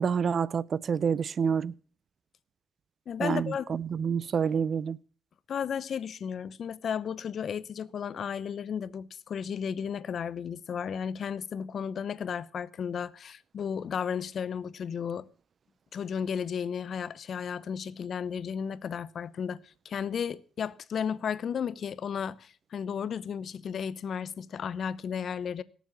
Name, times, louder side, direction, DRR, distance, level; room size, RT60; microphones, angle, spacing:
voice 1, 0.0-1.7 3.2-5.0, right 6 dB, 50° right, 0.5 m, -28 dB
voice 2, 3.1-3.7 5.5-15.3 15.9-25.6, left 7 dB, 55° left, 0.8 m, -34 dB
17.5 x 7.3 x 7.1 m
cardioid pair, 90°, 0 cm